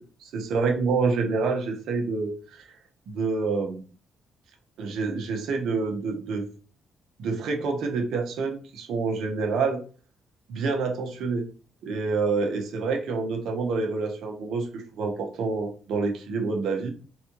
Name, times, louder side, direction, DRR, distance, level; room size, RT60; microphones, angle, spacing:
voice 1, 0.2-2.3 3.1-3.8 4.8-6.4 7.2-9.8 10.5-11.4 11.8-17.0, right 4 dB, 75° right, 3 dB, 0.9 m, -27 dB
3.6 x 3.1 x 3.0 m, 0.38 s
cardioid pair, 90°, 0 cm